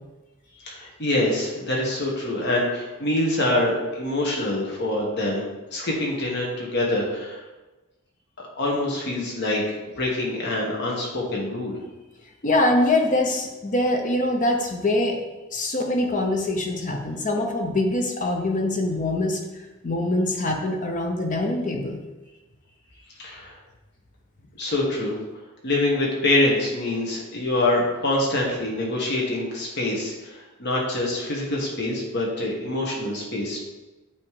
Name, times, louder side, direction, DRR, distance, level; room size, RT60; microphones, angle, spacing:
voice 1, 0.6-5.5 5.7-7.4 8.4-11.8 23.2-23.6 24.6-25.2 25.6-33.6, left 1 dB, 55° left, -2 dB, 1.4 m, -25 dB
voice 2, 12.4-15.2 15.5-19.4 19.8-22.0, left 2 dB, 40° left, 2 dB, 0.8 m, -23 dB
8.8 x 3.2 x 4.8 m, 1.1 s
head